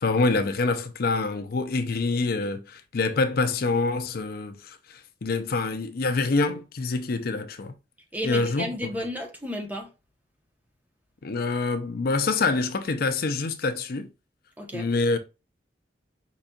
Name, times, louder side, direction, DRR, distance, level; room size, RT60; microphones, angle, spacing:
voice 1, 0.0-7.7 8.2-8.7 11.2-14.1 14.7-15.2, left 3 dB, 55° left, 0.5 m, -26 dB
voice 2, 8.1-9.9 14.6-14.9, equal, 10° right, 1.0 m, -32 dB
5.1 x 4.1 x 2.3 m
head